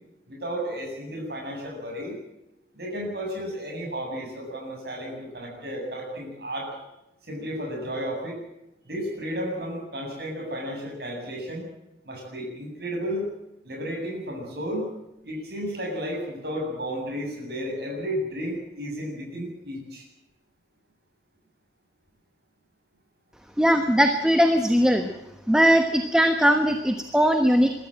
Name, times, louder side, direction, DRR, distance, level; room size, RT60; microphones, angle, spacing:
voice 1, 0.3-2.2 2.7-6.7 7.3-8.3 8.8-11.6 12.0-13.2 13.6-14.9 15.2-20.0, equal, 60° right, 0 dB, 7.6 m, -33 dB
voice 2, 23.6-25.1 25.5-27.7, equal, 5° right, 6 dB, 1.1 m, -20 dB
23.0 x 13.0 x 9.0 m, 0.90 s
head